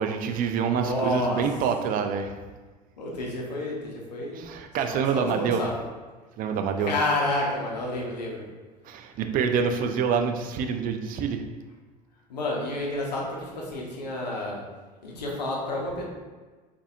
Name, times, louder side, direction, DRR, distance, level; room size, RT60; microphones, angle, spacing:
voice 1, 0.0-2.4 4.3-5.6 6.4-6.9 8.8-11.4, right 6 dB, 45° right, 6 dB, 0.4 m, -26 dB
voice 2, 0.7-1.4 3.0-4.4 4.9-5.8 6.8-8.4 12.3-14.6 15.0-16.0, left 1 dB, 90° left, -2 dB, 0.8 m, -29 dB
4.0 x 2.6 x 2.4 m, 1.3 s
hypercardioid pair, 75°, 21 cm